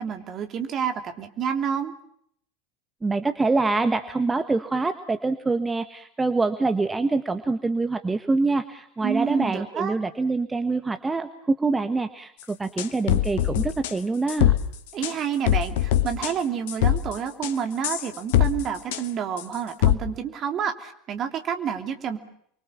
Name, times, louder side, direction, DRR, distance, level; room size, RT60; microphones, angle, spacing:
voice 1, 0.0-1.9 9.0-9.9 14.9-22.2, right 7 dB, 35° right, 6 dB, 3.1 m, -29 dB
voice 2, 3.0-14.5, right 3 dB, 15° right, 9 dB, 1.5 m, -25 dB
sound 1, 12.8-13.9 14.3-14.6 15.0-15.1 15.5-16.3 16.7-17.2 17.4-17.5 17.8-18.6 18.9-19.0 19.4-19.5 19.8-20.0, left 12 dB, 60° left, 1.2 m, -21 dB
30.0 x 23.5 x 7.3 m, 0.68 s
figure-of-eight pair, 75°, 0 cm